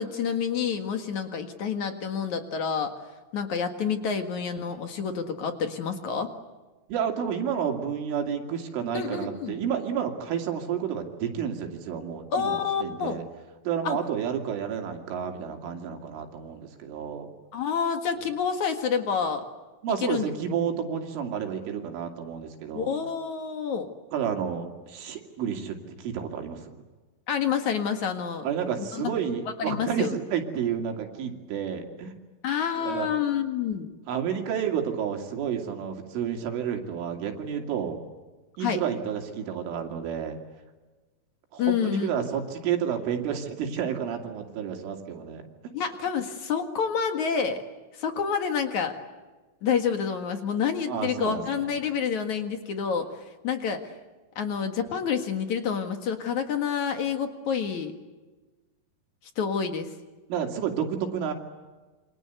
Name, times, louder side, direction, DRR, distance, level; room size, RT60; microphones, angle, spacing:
voice 1, 0.0-2.9 3.3-6.3 8.9-9.6 12.3-13.2 13.8-14.0 17.5-19.4 20.0-20.3 22.7-23.9 27.3-28.5 28.8-29.1 29.6-30.1 32.4-33.9 38.6-38.8 41.6-42.1 45.7-47.6 47.9-49.0 49.6-53.1 53.4-53.8 54.4-57.9 59.4-59.9, left 7 dB, 55° left, 6 dB, 2.2 m, -28 dB
voice 2, 6.9-13.2 13.6-17.3 19.8-22.9 24.1-26.7 28.4-32.1 32.8-33.1 34.1-38.0 38.6-40.4 41.5-45.5 50.9-51.7 60.3-61.3, right 8 dB, 75° right, 3 dB, 5.0 m, -30 dB
28.0 x 26.0 x 8.2 m, 1.2 s
omnidirectional pair, 5.7 m